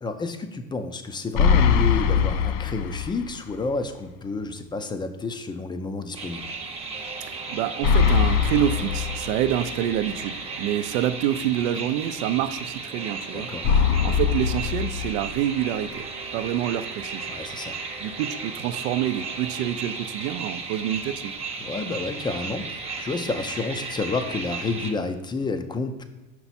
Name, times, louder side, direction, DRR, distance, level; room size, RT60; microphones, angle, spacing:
voice 1, 0.0-6.5 13.3-13.7 17.3-17.8 21.6-26.0, left 3 dB, 10° left, 8 dB, 0.4 m, -30 dB
sound 1, 1.3-3.4 3.7-3.8 7.8-9.8 13.6-15.6, left 7 dB, 60° left, 0.6 m, -22 dB
sound 2, 6.1-24.9, right 4 dB, 15° right, 0.8 m, -35 dB
voice 2, 7.2-13.5 14.0-16.0 16.3-17.3 18.0-21.3, right 11 dB, 75° right, 12 dB, 0.6 m, -27 dB
5.9 x 4.6 x 4.2 m, 1.1 s
supercardioid pair, 115°, 39 cm